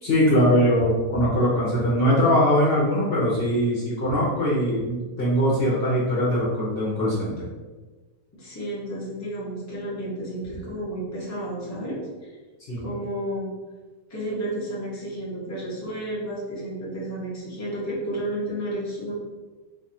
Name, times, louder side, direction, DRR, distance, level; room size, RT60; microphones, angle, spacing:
voice 1, 0.0-7.3 12.7-12.9, equal, 50° left, -6 dB, 0.9 m, -21 dB
voice 2, 8.3-12.3 12.8-13.5 14.1-19.1, right 1 dB, 15° left, -6 dB, 0.6 m, -32 dB
2.7 x 2.4 x 4.1 m, 1.3 s
omnidirectional pair, 1.5 m